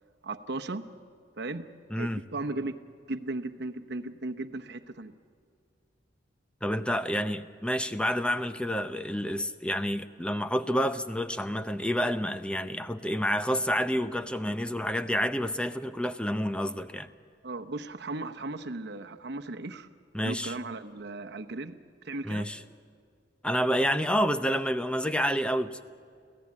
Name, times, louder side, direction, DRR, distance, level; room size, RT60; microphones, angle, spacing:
voice 1, 0.2-0.8 1.4-1.6 1.9-2.7 3.1-5.1 17.4-19.9 20.2-21.7 22.0-22.5, right 2 dB, 65° right, 6 dB, 0.9 m, -36 dB
voice 2, 1.9-2.2 6.6-17.1 20.1-20.5 22.2-22.6 23.4-25.8, equal, 5° left, 10 dB, 0.7 m, -29 dB
25.0 x 16.5 x 8.5 m, 2.2 s
head